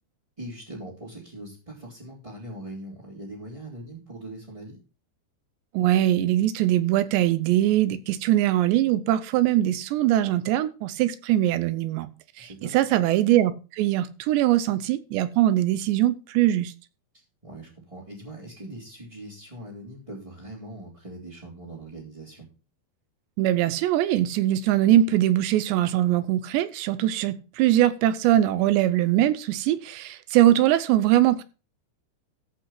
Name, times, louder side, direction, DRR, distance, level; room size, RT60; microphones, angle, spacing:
voice 1, 0.4-4.8 12.4-12.8 17.4-22.5, right 1 dB, 10° right, 2.7 m, -41 dB
voice 2, 5.7-12.1 12.4-16.7 23.4-31.4, right 13 dB, 80° right, 2.8 m, -22 dB
14.5 x 5.5 x 5.8 m
omnidirectional pair, 5.3 m